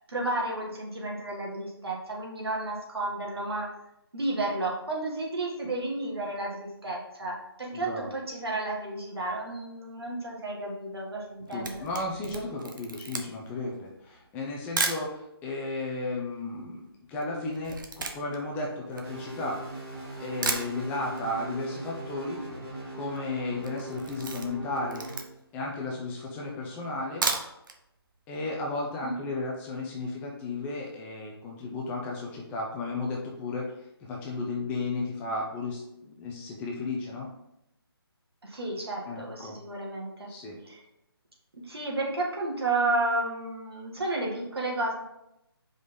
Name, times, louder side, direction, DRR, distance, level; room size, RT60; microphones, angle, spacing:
voice 1, 0.1-3.7 4.1-11.8 29.0-29.1 38.4-40.3 40.6-40.8 41.6-44.9, right 2 dB, 75° right, -2 dB, 2.1 m, -32 dB
voice 2, 7.7-8.1 11.5-16.8 17.1-19.6 20.2-22.4 22.9-25.0 25.5-27.2 28.3-33.6 34.0-37.3 39.1-39.6 40.3-40.6, left 2 dB, 10° left, -2 dB, 0.7 m, -34 dB
Camera, 11.2-15.1 15.8-15.9 16.1-19.7 20.1-20.2 20.4-21.3 21.5-21.6 21.9-22.0 22.2-22.7 23.0-23.2 23.6-25.6 26.1-26.2 27.0-27.8 28.1-28.2 28.6-28.7, right 4 dB, 50° right, 0.8 m, -34 dB
sound 1, 19.0-25.2, right 2 dB, 15° right, 1.9 m, -40 dB
5.1 x 3.9 x 5.3 m, 0.85 s
figure-of-eight pair, 150°, 13 cm